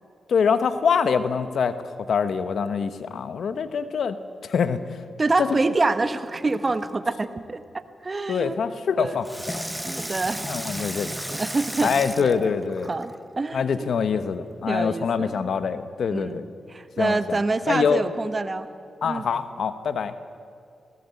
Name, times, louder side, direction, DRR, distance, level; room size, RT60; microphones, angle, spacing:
voice 1, 0.3-1.8 2.1-4.2 4.4-4.8 5.4-5.6 8.3-9.6 10.5-11.2 11.8-12.9 13.5-16.4 17.0-17.4 17.7-18.0 19.0-20.1, left 6 dB, 70° left, 11 dB, 1.0 m, -24 dB
voice 2, 5.2-8.6 9.0-9.2 9.8-10.4 11.3-12.6 12.9-13.9 14.7-15.5 16.1-18.7 19.0-19.3, right 3 dB, 40° right, 11 dB, 1.2 m, -27 dB
Water tap faucet / Sink (filling or washing), 6.3-6.9 9.2-13.2 13.8-13.9, right 1 dB, 10° right, 0.8 m, -34 dB
19.0 x 17.5 x 8.3 m, 2.4 s
supercardioid pair, 45°, 0 cm